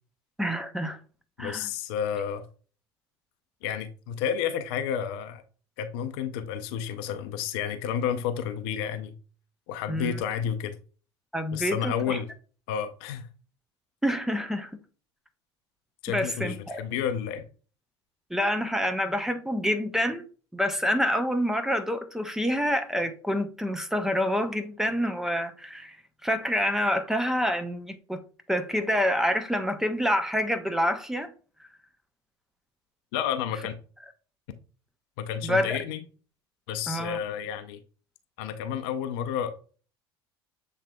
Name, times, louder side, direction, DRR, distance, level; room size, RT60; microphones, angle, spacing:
voice 1, 0.4-1.0 1.4-1.7 9.9-10.2 11.3-12.2 14.0-14.8 16.1-16.8 18.3-20.2 20.5-26.0 26.2-28.2 28.5-31.3 35.4-35.8 36.9-37.2, equal, 5° right, 0.6 m, -27 dB
voice 2, 1.4-2.5 3.6-5.4 5.8-9.1 9.7-10.8 11.5-12.3 12.7-13.3 16.0-17.4 33.1-33.7 35.2-36.0 36.7-37.8 38.4-39.6, left 8 dB, 60° left, 0.6 m, -31 dB
7.3 x 3.3 x 2.2 m
figure-of-eight pair, 70°, 14 cm